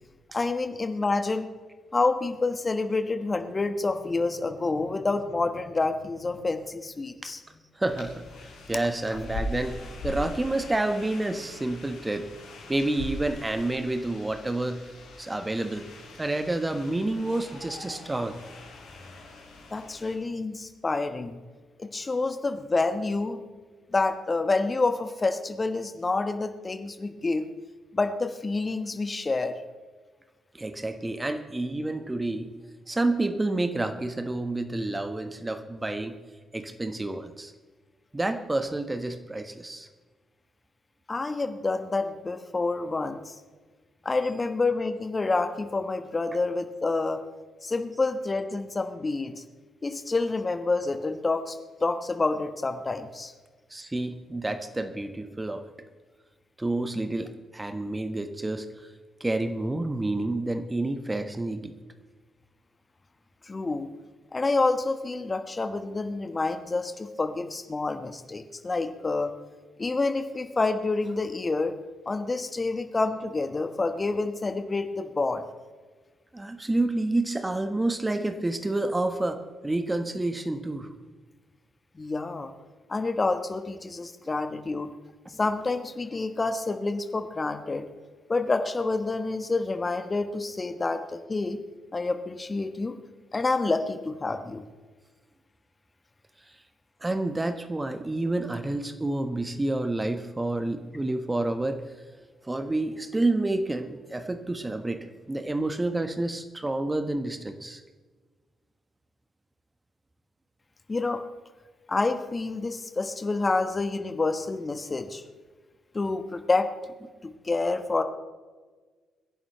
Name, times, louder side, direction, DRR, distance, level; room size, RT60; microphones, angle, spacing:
voice 1, 0.3-1.5 1.9-7.4 19.7-21.4 21.8-23.4 23.9-27.5 27.9-29.5 41.1-43.3 44.0-47.2 47.6-49.4 49.8-53.3 63.4-63.9 64.3-69.3 69.8-71.8 72.1-75.4 81.9-82.5 82.9-84.9 85.3-87.9 88.3-91.6 91.9-93.0 93.3-94.6 110.9-111.2 111.9-115.2 115.9-116.7 117.2-118.0, left 3 dB, 30° left, 8 dB, 1.2 m, -28 dB
sound 1, 7.8-20.2, left 2 dB, 75° left, 3.5 m, -41 dB
voice 2, 7.8-8.2 8.7-12.3 12.7-14.9 15.2-15.9 16.2-18.4 30.5-32.5 32.9-36.2 36.5-37.5 38.1-39.9 53.7-55.6 56.6-58.6 59.2-61.7 76.3-80.9 97.0-101.8 102.5-107.8, right 2 dB, 20° right, 8 dB, 1.3 m, -29 dB
24.5 x 11.0 x 3.2 m, 1.4 s
hypercardioid pair, 40°, 0 cm